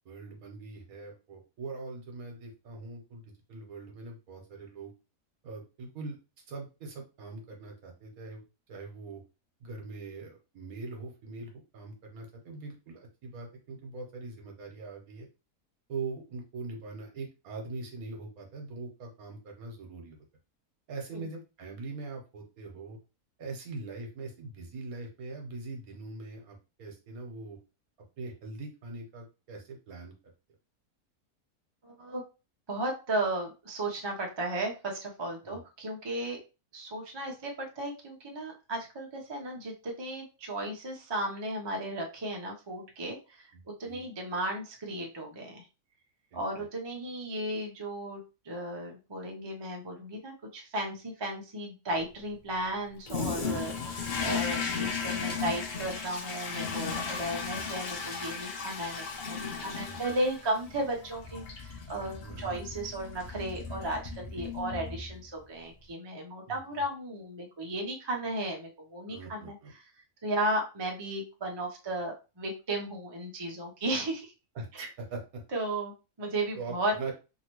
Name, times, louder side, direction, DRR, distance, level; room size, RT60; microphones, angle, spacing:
voice 1, 0.0-3.2 3.5-4.9 5.4-6.2 6.5-8.4 8.7-9.2 9.6-15.3 15.9-20.2 20.9-23.0 23.4-27.6 28.2-30.1 35.4-35.6 43.5-44.1 46.3-46.7 53.4-53.6 55.1-55.5 56.6-57.0 59.8-60.0 62.2-62.6 66.4-66.8 69.1-69.7 74.5-75.4 76.6-77.1, right 3 dB, 70° right, 2 dB, 1.3 m, -42 dB
voice 2, 31.8-32.2 32.7-36.4 36.7-43.5 43.8-45.7 46.3-69.8 70.2-74.3 74.7-74.9 75.5-76.9, right 1 dB, 35° right, 1 dB, 0.4 m, -35 dB
Toilet flush, 53.1-65.4, left 5 dB, 60° left, 0.5 m, -36 dB
2.8 x 2.8 x 2.9 m, 0.30 s
omnidirectional pair, 1.6 m